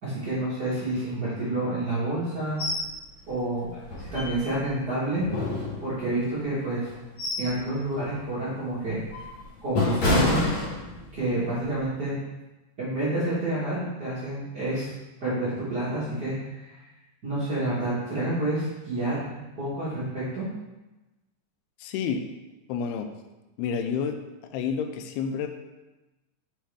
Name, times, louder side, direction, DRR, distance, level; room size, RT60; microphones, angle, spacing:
voice 1, 0.0-2.6 3.3-5.2 5.8-6.9 7.4-9.0 9.6-10.5 11.1-12.1 12.8-14.9 15.2-16.8 17.2-20.5, right 1 dB, 70° right, -11 dB, 0.9 m, -29 dB
sound 1, 2.6-2.9 3.3-3.4 3.8-4.7 5.2-6.2 6.8-7.6 8.0-8.2 8.8-11.2 11.6-11.8, left 2 dB, 60° left, 1.4 m, -28 dB
voice 2, 21.8-22.3 22.7-23.1 23.6-24.2 24.5-25.5, left 6 dB, 85° left, 7 dB, 2.5 m, -29 dB
7.4 x 4.5 x 3.5 m, 1.1 s
omnidirectional pair, 4.6 m